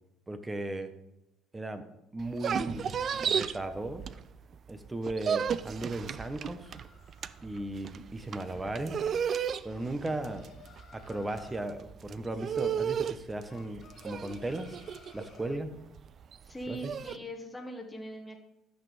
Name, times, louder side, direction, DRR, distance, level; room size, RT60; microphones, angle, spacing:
voice 1, 0.3-0.9 1.5-1.8 2.1-2.8 3.2-4.2 4.7-6.7 7.4-9.0 9.6-10.5 10.9-14.8 15.1-15.7 16.7-16.9, right 2 dB, 20° right, 9 dB, 1.1 m, -36 dB
sound 1, 2.2-4.5 4.8-17.2, right 7 dB, 50° right, 0.4 m, -34 dB
sound 2, 5.6-7.6 9.7-11.7 13.5-15.6, left 6 dB, 50° left, 1.5 m, -57 dB
voice 2, 16.4-18.4, equal, 15° left, 1 dB, 1.4 m, -41 dB
13.0 x 6.0 x 3.4 m, 0.87 s
hypercardioid pair, 65°, 0 cm